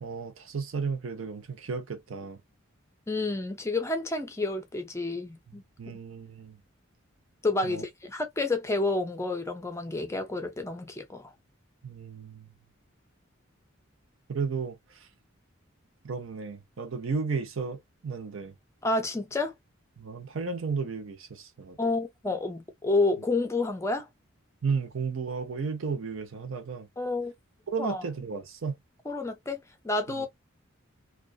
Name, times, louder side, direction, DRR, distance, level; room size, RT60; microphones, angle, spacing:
voice 1, 0.0-2.4 5.8-6.6 7.6-7.8 11.8-12.5 14.3-14.8 16.0-18.5 20.0-21.8 24.6-26.9 27.7-28.7 30.1-30.2, right 5 dB, 70° right, 0.6 m, -33 dB
voice 2, 3.1-6.0 7.4-11.3 18.8-19.5 21.8-24.1 27.0-27.3 27.8-28.0 29.1-30.3, left 2 dB, 15° left, 0.4 m, -30 dB
2.4 x 2.2 x 2.3 m
head